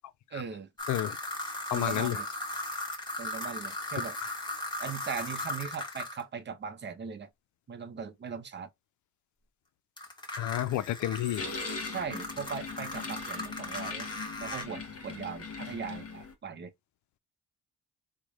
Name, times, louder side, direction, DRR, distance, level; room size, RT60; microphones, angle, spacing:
voice 1, 0.3-0.7 1.7-2.3 3.2-4.2 4.8-7.3 7.7-8.7 11.9-14.1 14.4-16.7, right 6 dB, 35° right, 0.7 m, -39 dB
sound 1, 0.8-6.2 10.0-14.6, left 1 dB, 15° left, 1.1 m, -37 dB
voice 2, 1.7-2.2 10.4-11.5, left 13 dB, 75° left, 0.5 m, -30 dB
sound 2, 11.4-16.3, left 4 dB, 50° left, 1.1 m, -40 dB
3.1 x 2.2 x 3.7 m
cardioid pair, 90°, 30 cm